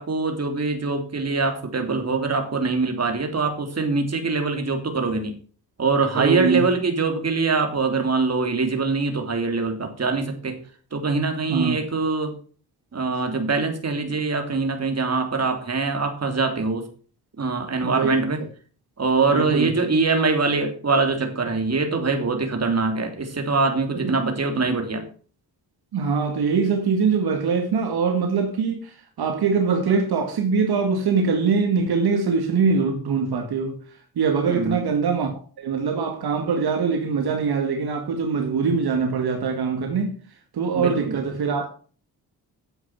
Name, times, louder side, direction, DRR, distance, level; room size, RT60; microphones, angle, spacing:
voice 1, 0.0-5.3 5.8-10.5 10.9-12.3 12.9-16.8 17.4-18.4 19.0-25.0 34.5-34.8 40.7-41.2, right 4 dB, 40° right, 3.1 m, -23 dB
voice 2, 6.1-6.6 11.5-11.8 17.8-18.2 19.3-19.7 23.9-24.1 25.9-33.8 34.2-35.3 35.6-40.2 40.5-41.7, right 5 dB, 70° right, 2.0 m, -23 dB
9.7 x 8.1 x 5.7 m
cardioid pair, 75°, 39 cm